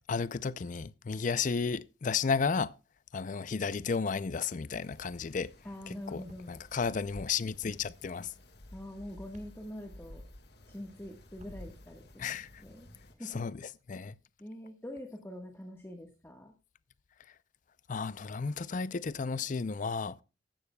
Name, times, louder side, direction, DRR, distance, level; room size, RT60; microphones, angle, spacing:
voice 1, 0.1-2.7 3.1-5.5 5.9-8.3 12.2-12.6 13.3-14.2 17.9-20.2, left 5 dB, 45° left, 0.5 m, -33 dB
sound 1, 4.8-13.1, left 1 dB, 65° left, 1.8 m, -53 dB
voice 2, 5.6-6.6 8.7-10.2 10.7-12.9 13.2-13.4 14.4-16.5, left 1 dB, 15° left, 1.4 m, -44 dB
sound 2, 6.3-6.5 7.6-7.8 9.3-9.5 11.3-11.6, equal, 45° right, 1.6 m, -55 dB
15.0 x 11.5 x 2.3 m
head